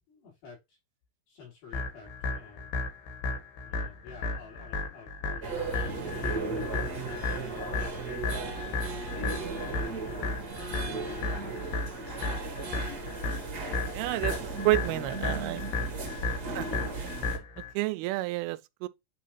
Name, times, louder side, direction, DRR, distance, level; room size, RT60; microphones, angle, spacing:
voice 1, 0.1-0.8 1.3-2.8 3.6-5.9 6.2-7.6 8.1-10.3 10.9-11.6 14.8-16.2, left 4 dB, 60° left, 6.0 m, -50 dB
sound 1, 1.7-17.7, left 3 dB, 80° left, 4.2 m, -34 dB
sound 2, 5.4-17.4, right 3 dB, 55° right, 1.0 m, -36 dB
voice 2, 13.9-15.6 16.5-16.7 17.0-18.9, right 20 dB, 80° right, 2.5 m, -31 dB
9.4 x 3.6 x 3.1 m
omnidirectional pair, 4.6 m